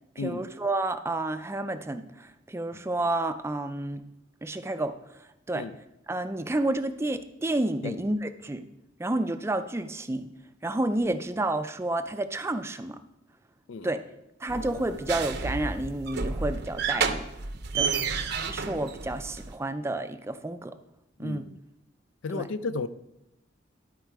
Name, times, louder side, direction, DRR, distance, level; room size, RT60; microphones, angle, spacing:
voice 1, 0.2-4.0 4.4-5.7 6.1-8.6 9.0-10.3 10.6-13.0 13.8-14.0 14.4-17.3 17.7-17.9 18.4-20.8 21.2-21.5 22.3-22.5, right 2 dB, 15° right, 0.4 m, -30 dB
sound 1, 14.5-19.5, right 5 dB, 60° right, 0.6 m, -31 dB
voice 2, 21.2-21.5 22.2-22.9, left 3 dB, 80° left, 0.4 m, -33 dB
11.5 x 4.4 x 4.7 m
head